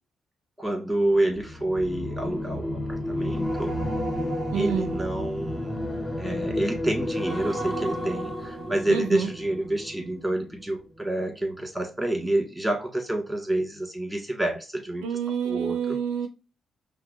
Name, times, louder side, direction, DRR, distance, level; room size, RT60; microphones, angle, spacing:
voice 1, 0.6-3.7 4.5-5.8 6.2-15.1 15.4-16.0, right 1 dB, 5° right, 2 dB, 1.8 m, -28 dB
sound 1, 1.2-10.6 11.0-11.3, left 1 dB, 35° left, 1.6 m, -31 dB
voice 2, 4.5-4.9 8.9-9.3 15.0-16.3, right 8 dB, 80° right, 8 dB, 0.4 m, -28 dB
5.6 x 2.0 x 2.6 m, 0.30 s
hypercardioid pair, 40°, 0 cm